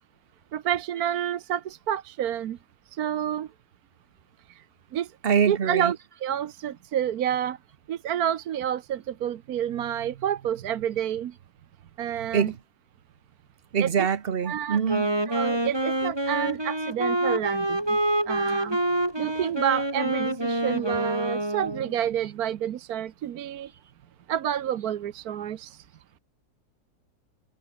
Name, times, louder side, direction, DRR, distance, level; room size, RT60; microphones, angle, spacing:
voice 1, 0.5-2.6 2.9-3.5 4.9-5.1 5.5-6.0 6.2-7.6 7.9-11.3 12.0-12.5 13.8-13.9 14.5-14.8 15.3-18.0 18.3-18.8 19.2-23.7 24.3-25.8, right 10 dB, 75° right, 1.4 m, -29 dB
voice 2, 5.2-6.0 12.3-12.6 13.7-15.1 18.5-18.6, right 7 dB, 40° right, 1.2 m, -24 dB
Wind instrument woodwind instrument, 14.8-21.9, right 1 dB, 15° right, 3.1 m, -27 dB
omnidirectional pair, 1.6 m